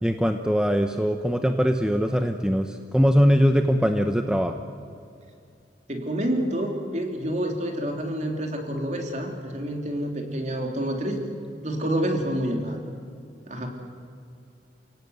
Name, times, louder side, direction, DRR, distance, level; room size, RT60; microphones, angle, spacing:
voice 1, 0.0-4.5, equal, 5° right, 6 dB, 0.8 m, -21 dB
voice 2, 5.9-11.2 11.6-12.8 13.5-13.7, right 1 dB, 40° right, 3 dB, 3.1 m, -28 dB
29.0 x 17.5 x 8.0 m, 2.4 s
head